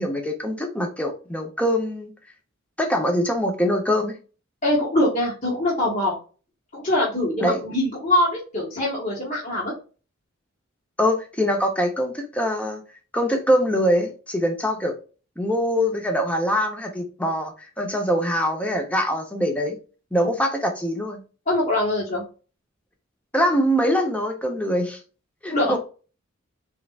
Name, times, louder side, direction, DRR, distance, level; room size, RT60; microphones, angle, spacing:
voice 1, 0.0-2.1 2.8-4.1 7.4-7.6 11.0-12.8 13.1-15.0 15.4-19.7 20.1-21.2 23.3-25.0 25.4-25.8, equal, 5° left, 3 dB, 0.8 m, -23 dB
voice 2, 4.6-6.2 6.7-9.7 21.5-22.2 25.5-25.8, left 1 dB, 40° left, -6 dB, 1.4 m, -23 dB
4.4 x 3.8 x 2.4 m, 0.36 s
head